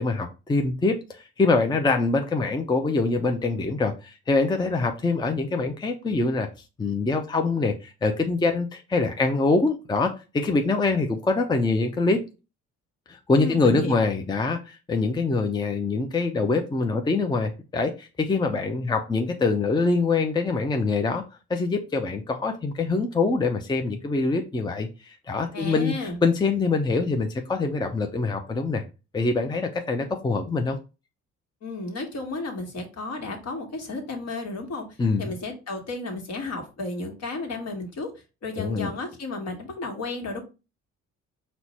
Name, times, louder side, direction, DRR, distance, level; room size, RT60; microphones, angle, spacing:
voice 1, 0.0-6.5 6.8-12.2 13.1-21.2 21.5-28.8 29.1-30.8 35.0-35.3 38.6-38.9, left 3 dB, 15° left, 5 dB, 0.5 m, -24 dB
voice 2, 13.3-13.9 25.5-26.2 31.6-38.1 38.4-40.4, left 3 dB, 55° left, 3 dB, 1.4 m, -33 dB
4.4 x 2.1 x 4.1 m, 0.29 s
cardioid pair, 90°, 30 cm